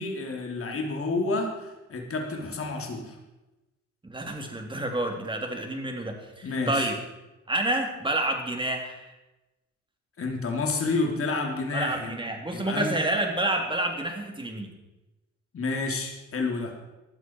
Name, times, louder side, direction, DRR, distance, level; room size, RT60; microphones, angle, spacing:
voice 1, 0.0-3.2 6.4-6.9 10.2-12.2 12.5-12.9 15.5-16.7, left 3 dB, 45° left, 1 dB, 3.3 m, -29 dB
voice 2, 4.0-6.9 7.5-9.1 11.7-14.7, right 1 dB, 15° right, 2 dB, 3.5 m, -29 dB
18.5 x 12.5 x 4.7 m, 1.0 s
cardioid pair, 90°, 30 cm